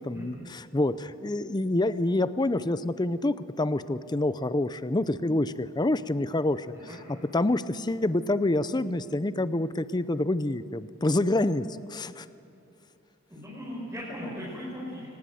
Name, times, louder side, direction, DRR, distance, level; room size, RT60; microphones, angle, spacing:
voice 1, 0.0-6.7 7.1-12.3, left 2 dB, 20° left, 14 dB, 0.6 m, -27 dB
voice 2, 13.3-15.0, equal, 15° right, -7 dB, 5.7 m, -38 dB
25.0 x 20.0 x 7.8 m, 2.6 s
head